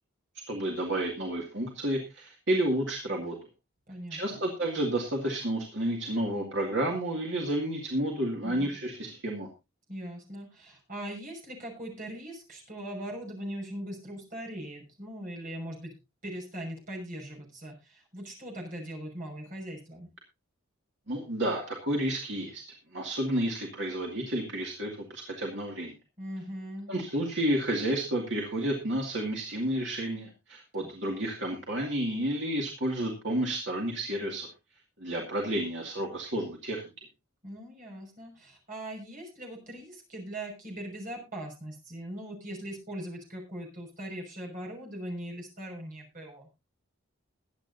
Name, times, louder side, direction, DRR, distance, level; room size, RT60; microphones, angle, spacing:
voice 1, 0.5-3.4 4.1-9.5 21.1-22.6 22.9-25.9 26.9-34.5 35.0-36.8, right 1 dB, 55° right, 0 dB, 2.2 m, -31 dB
voice 2, 3.9-4.4 8.4-8.7 9.9-15.9 16.2-20.1 26.2-26.9 30.8-30.9 37.4-46.5, right 1 dB, 40° right, 0 dB, 6.0 m, -40 dB
22.0 x 9.0 x 2.7 m, 0.27 s
head